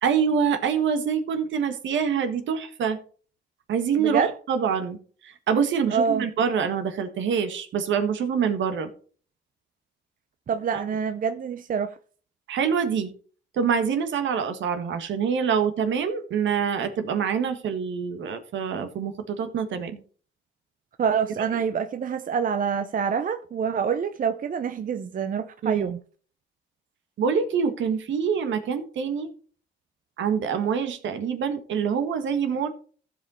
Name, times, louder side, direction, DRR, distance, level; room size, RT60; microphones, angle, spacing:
voice 1, 0.0-3.0 3.7-4.2 4.5-5.0 5.2-8.9 10.7-10.8 12.5-13.1 13.5-20.0 25.6-25.9 27.2-29.3 30.2-32.7, right 7 dB, 70° right, 1.7 m, -25 dB
voice 2, 4.0-4.3 5.9-6.2 10.5-11.9 21.0-26.0, right 6 dB, 45° right, 0.7 m, -26 dB
14.5 x 5.2 x 4.3 m
cardioid pair, 90°, 20 cm